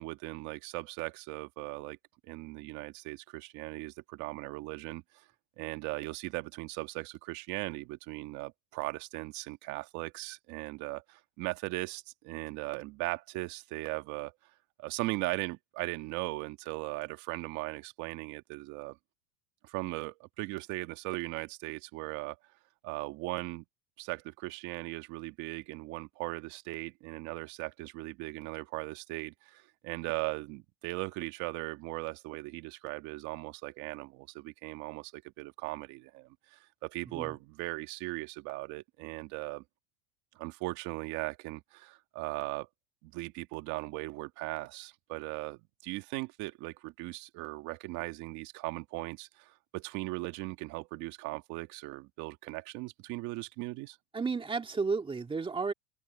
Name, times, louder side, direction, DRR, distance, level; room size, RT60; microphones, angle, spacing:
voice 1, 0.0-2.0 2.2-5.3 5.6-14.3 14.8-19.0 19.6-22.4 22.8-23.6 24.0-39.6 40.4-42.7 43.0-54.0, right 21 dB, 55° right, 1.9 m, -38 dB
voice 2, 54.1-55.7, right 4 dB, 15° right, 1.9 m, -32 dB
open air
supercardioid pair, 130°, 34 cm